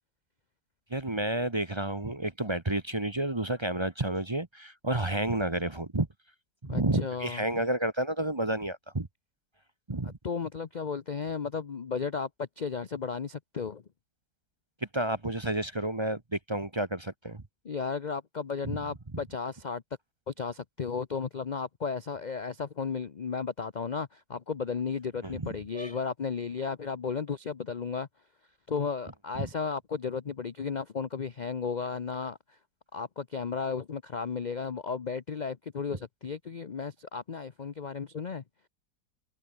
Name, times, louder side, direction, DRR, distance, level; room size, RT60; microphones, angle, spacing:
voice 1, 0.9-6.1 6.6-9.1 9.9-10.2 14.9-17.4 18.6-18.8 25.2-26.0 29.4-29.5, right 1 dB, 20° right, 1.0 m, -30 dB
voice 2, 6.7-7.4 10.0-13.8 17.6-19.8 20.3-28.1 28.7-32.4 32.9-38.4, left 5 dB, 45° left, 0.5 m, -34 dB
omnidirectional pair, 1.8 m